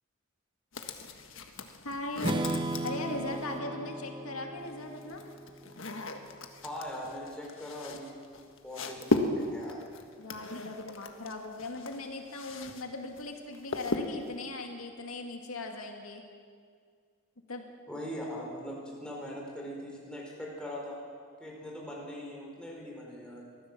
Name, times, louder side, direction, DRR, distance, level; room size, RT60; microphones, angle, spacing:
sound 1, 0.7-3.6 4.6-12.8 13.1-14.4, left 2 dB, 65° left, 1.6 m, -36 dB
voice 1, 1.8-2.4 2.8-5.2 10.2-16.2 17.5-17.7, left 2 dB, 85° left, 3 dB, 2.2 m, -39 dB
Strum, 2.2-6.1, right 2 dB, 20° right, 0.9 m, -36 dB
voice 2, 6.6-8.1 8.6-9.8 17.9-21.0 21.4-23.4, equal, 5° left, -3 dB, 4.8 m, -41 dB
23.5 x 15.0 x 7.5 m, 2.1 s
head